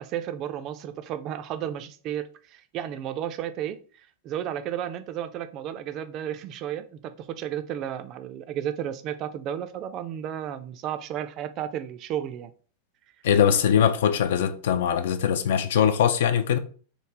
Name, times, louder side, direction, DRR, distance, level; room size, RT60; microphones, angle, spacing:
voice 1, 0.0-12.5, right 10 dB, 35° right, 0.3 m, -33 dB
voice 2, 13.2-16.6, left 8 dB, 55° left, 0.3 m, -21 dB
3.1 x 2.1 x 3.5 m
figure-of-eight pair, 90°, 0 cm